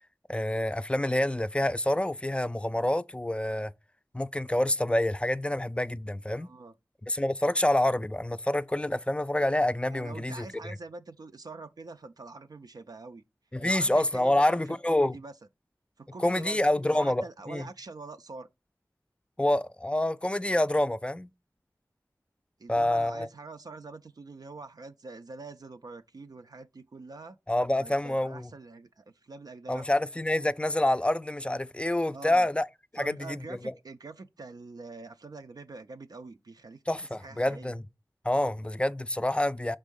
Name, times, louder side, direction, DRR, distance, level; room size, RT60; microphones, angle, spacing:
voice 1, 0.3-3.7 4.1-6.5 7.1-10.7 13.5-15.2 16.2-17.6 19.4-21.3 22.7-23.3 27.5-28.5 29.7-32.7 32.9-33.7 36.9-37.8 38.2-39.8, left 1 dB, 15° left, 0.3 m, -27 dB
voice 2, 6.3-6.7 9.9-13.2 13.6-15.3 16.0-16.6 16.9-18.5 22.6-27.4 27.8-29.9 32.1-32.5 33.0-37.7, right 3 dB, 70° right, 0.4 m, -45 dB
5.3 x 3.6 x 5.2 m
wide cardioid pair, 40°, 7 cm